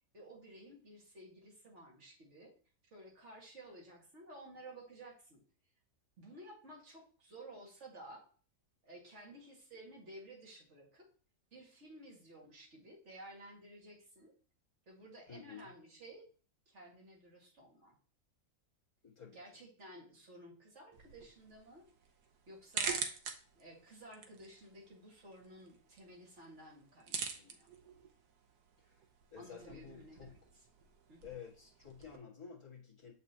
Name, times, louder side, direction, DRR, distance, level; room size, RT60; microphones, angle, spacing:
voice 1, 0.1-2.5 2.9-5.4 6.2-8.3 8.8-11.1 11.5-14.3 14.9-16.3 16.7-18.0 19.3-21.9 22.5-23.1 23.5-27.7 29.4-30.4 31.1-31.4, right 1 dB, 45° right, -3 dB, 2.2 m, -54 dB
voice 2, 15.3-15.7 19.0-19.4 28.8-29.0 29.3-30.3 31.2-33.1, left 7 dB, 20° left, -5 dB, 1.8 m, -51 dB
sound 1, 20.9-32.2, right 6 dB, 80° right, 1.4 m, -46 dB
7.0 x 5.5 x 2.8 m, 0.40 s
omnidirectional pair, 1.7 m